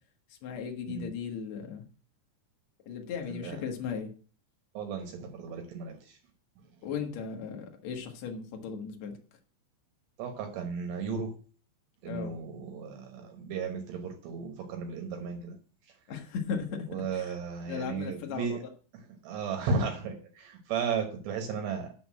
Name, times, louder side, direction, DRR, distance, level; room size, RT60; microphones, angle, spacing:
voice 1, 0.4-1.8 2.9-4.1 6.8-9.2 12.0-12.4 16.1-16.7 17.1-17.3 17.7-18.7, left 6 dB, 85° left, 3 dB, 1.5 m, -36 dB
voice 2, 3.2-3.6 4.7-6.2 10.2-11.3 12.0-15.6 16.9-18.6 18.9-21.9, right 5 dB, 75° right, 4 dB, 3.2 m, -35 dB
6.8 x 6.2 x 7.5 m, 0.40 s
omnidirectional pair, 5.2 m